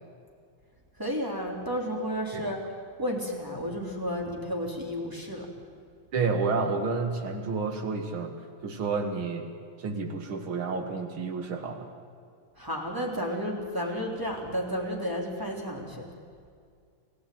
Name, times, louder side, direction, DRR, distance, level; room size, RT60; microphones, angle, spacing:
voice 1, 1.0-2.6 3.0-5.5 12.6-16.1, equal, 10° right, 0 dB, 3.6 m, -32 dB
voice 2, 6.1-8.4 8.6-9.5 9.8-11.9, right 4 dB, 90° right, 5 dB, 2.7 m, -30 dB
29.0 x 16.0 x 9.5 m, 2.2 s
omnidirectional pair, 2.2 m